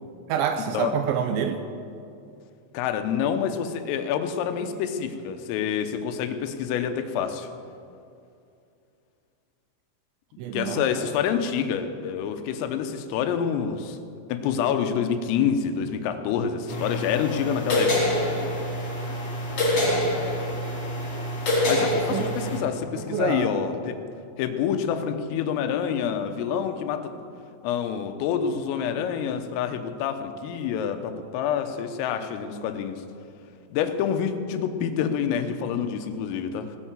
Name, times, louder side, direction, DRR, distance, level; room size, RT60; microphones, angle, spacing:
voice 1, 0.3-1.6 10.4-11.0 21.9-22.5 23.0-23.5, right 8 dB, 85° right, 7 dB, 2.7 m, -28 dB
voice 2, 2.7-7.5 10.5-14.0 14.3-18.0 21.7-24.0 24.4-27.1 27.6-33.0 33.7-36.8, left 8 dB, 90° left, 8 dB, 3.6 m, -27 dB
sound 1, 16.7-22.6, left 1 dB, 35° left, 3.4 m, -26 dB
18.0 x 10.0 x 7.4 m, 2.5 s
omnidirectional pair, 5.8 m